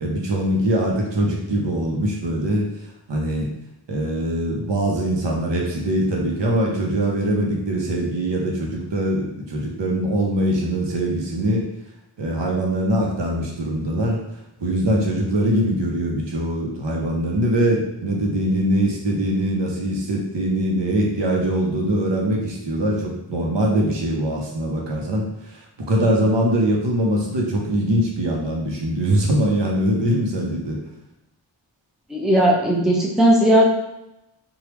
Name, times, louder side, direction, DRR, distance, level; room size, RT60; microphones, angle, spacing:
voice 1, 0.0-2.7 3.1-3.5 3.9-11.7 12.2-14.2 14.6-25.6 25.9-30.8, right 1 dB, 70° right, -1 dB, 0.8 m, -22 dB
voice 2, 32.1-33.6, right 1 dB, ahead, -2 dB, 0.5 m, -16 dB
3.2 x 2.3 x 3.0 m, 0.88 s
wide cardioid pair, 60°, 45 cm